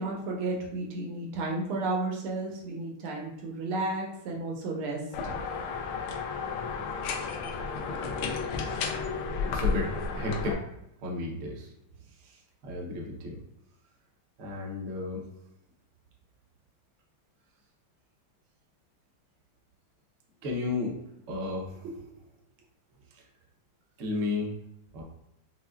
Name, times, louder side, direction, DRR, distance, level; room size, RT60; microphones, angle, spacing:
voice 1, 0.0-5.0 21.8-21.9, right 2 dB, 85° right, -1 dB, 1.7 m, -32 dB
sound 1, 5.1-10.5, left 5 dB, 85° left, 1.5 m, -32 dB
voice 2, 8.7-9.1 9.4-9.9 10.2-10.6 11.0-11.7 12.2-13.4 14.4-15.2 20.4-21.0 21.3-21.9 24.0-24.6 24.9-25.0, left 3 dB, 65° right, -2 dB, 0.7 m, -33 dB
5.8 x 2.2 x 2.3 m, 0.82 s
omnidirectional pair, 2.4 m